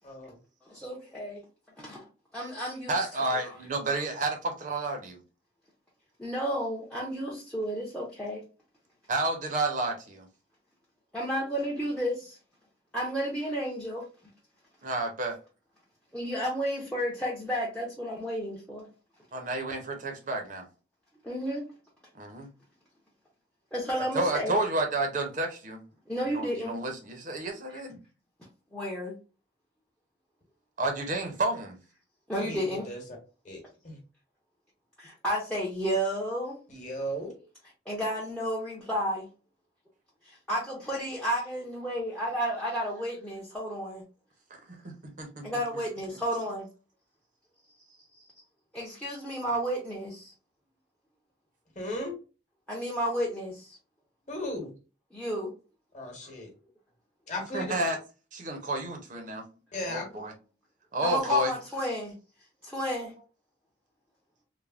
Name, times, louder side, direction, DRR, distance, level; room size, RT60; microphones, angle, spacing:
voice 1, 0.0-0.4 32.4-33.0 33.4-34.0 36.7-37.3 51.7-52.1 54.3-54.7 55.9-56.5 57.3-57.8 59.7-60.1, left 1 dB, 40° left, 1.0 m, -36 dB
voice 2, 0.6-1.4 1.8-2.1 2.3-3.5 6.2-8.4 11.1-12.4 12.9-14.0 16.1-18.9 21.2-21.7 23.7-24.5 26.1-26.8 28.7-29.1 32.3-32.9 35.0-36.6 37.9-39.3 40.2-44.0 45.4-46.7 48.7-50.3 52.7-53.8 55.1-55.5 61.0-62.1 62.6-63.1, equal, 5° left, 0.5 m, -32 dB
voice 3, 2.9-5.2 9.1-10.3 14.8-15.4 19.3-20.7 22.1-22.5 24.1-25.8 26.3-28.0 30.8-31.8 44.5-45.5 57.5-58.0 58.3-59.4 59.8-60.3 60.9-61.5, right 2 dB, 40° right, 0.5 m, -31 dB
3.2 x 2.0 x 2.3 m
head